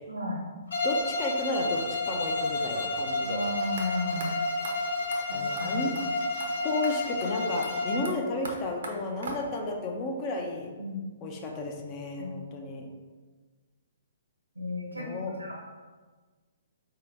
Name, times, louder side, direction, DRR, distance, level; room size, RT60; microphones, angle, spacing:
voice 1, 0.1-0.4 3.2-4.3 5.3-5.8 7.9-8.0 10.8-11.0 12.2-12.3 14.5-15.1 15.4-15.5, left 1 dB, 85° right, -1 dB, 1.2 m, -34 dB
Bowed string instrument, 0.7-8.2, left 2 dB, 70° left, 1.0 m, -30 dB
voice 2, 0.8-3.5 5.3-5.9 6.6-10.7 11.2-12.9 15.0-15.3, left 2 dB, 30° left, 1 dB, 0.6 m, -33 dB
sound 1, 3.8-3.9 4.2-4.3 4.6-4.7 5.1-5.2 5.6-5.7 5.9-6.1 6.4-6.5 6.8-6.9 7.2-7.3 7.6-9.7, right 2 dB, 60° right, 0.8 m, -41 dB
4.5 x 2.8 x 3.4 m, 1.4 s
figure-of-eight pair, 125°, 0 cm